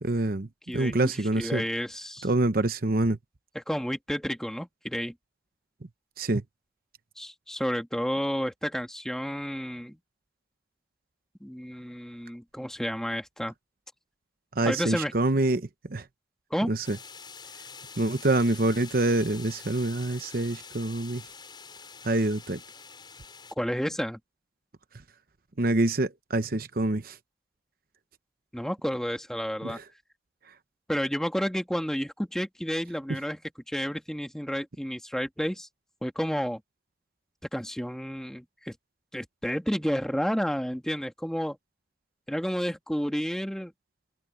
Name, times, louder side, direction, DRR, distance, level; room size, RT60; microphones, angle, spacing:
voice 1, 0.0-1.6 2.2-3.2 6.2-6.4 14.5-16.1 16.7-17.0 18.0-21.3 22.0-22.6 25.6-27.2 29.6-29.8 33.1-33.2, right 2 dB, 55° right, 0.9 m, -26 dB
voice 2, 0.7-1.1 1.4-2.3 3.6-5.1 7.2-10.0 11.4-13.5 14.7-15.1 16.5-16.7 23.6-24.2 28.5-29.8 30.9-33.4 33.7-35.7 36.0-36.6 37.5-38.7 39.1-41.6 42.3-43.7, equal, 5° left, 1.9 m, -31 dB
sound 1, 16.8-23.5, left 5 dB, 25° left, 6.3 m, -46 dB
open air
head